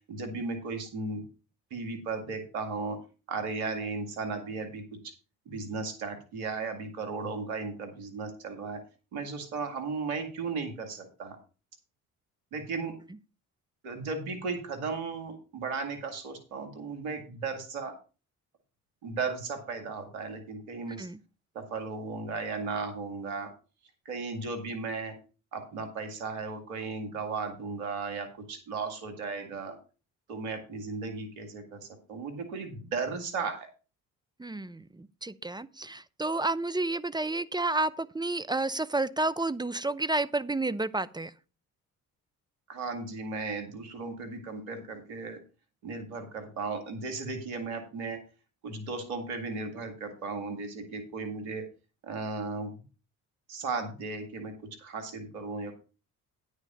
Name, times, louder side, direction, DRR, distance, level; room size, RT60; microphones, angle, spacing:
voice 1, 0.1-1.2 1.7-3.0 3.3-5.1 5.5-8.8 9.1-11.4 12.5-12.9 13.8-17.9 19.0-21.1 21.5-23.5 24.1-25.1 25.5-29.8 30.3-33.7 42.7-45.4 45.8-48.2 48.6-51.7 52.0-52.7 53.5-55.8, right 4 dB, 85° right, 7 dB, 2.0 m, -35 dB
voice 2, 34.4-41.3, right 2 dB, 10° right, 15 dB, 0.6 m, -30 dB
9.6 x 6.6 x 5.4 m, 0.33 s
hypercardioid pair, 50°, 42 cm